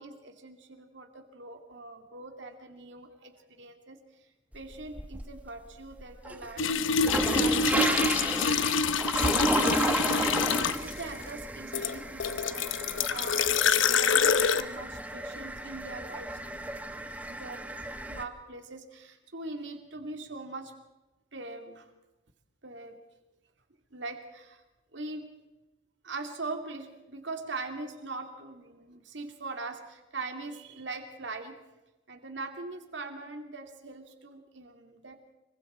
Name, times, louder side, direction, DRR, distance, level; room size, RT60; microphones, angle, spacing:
voice 1, 0.0-4.0 4.5-13.6 13.9-17.6 18.0-20.7 21.3-21.9 22.6-23.0 23.9-24.6 24.9-25.3 26.0-31.6 32.1-35.2, right 3 dB, 65° right, 5 dB, 2.4 m, -42 dB
sound 1, 4.5-5.5 5.9-18.2, right 1 dB, 10° right, 1.0 m, -33 dB
sound 2, 6.6-11.0 11.7-14.6, left 5 dB, 80° left, 0.9 m, -26 dB
25.5 x 23.5 x 4.4 m, 1.0 s
head